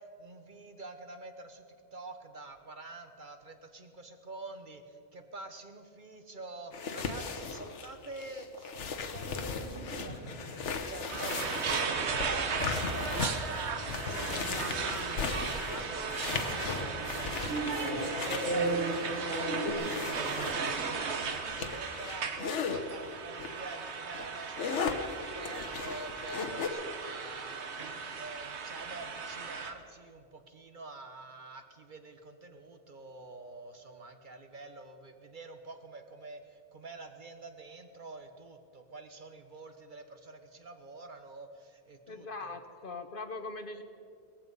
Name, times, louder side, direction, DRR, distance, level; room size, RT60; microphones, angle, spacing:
voice 1, 0.0-1.6 1.9-42.8, right 3 dB, 45° right, 7 dB, 1.1 m, -47 dB
sound 1, 6.7-22.8 23.4-23.6 24.0-26.7, left 5 dB, 80° left, 1.3 m, -37 dB
sound 2, 9.1-19.7, right 2 dB, 85° right, 4.3 m, -39 dB
sound 3, 11.1-29.7, right 5 dB, 70° right, 1.4 m, -36 dB
voice 2, 42.1-43.8, left 3 dB, 50° left, 9 dB, 1.0 m, -41 dB
18.5 x 14.5 x 5.4 m, 2.5 s
omnidirectional pair, 1.2 m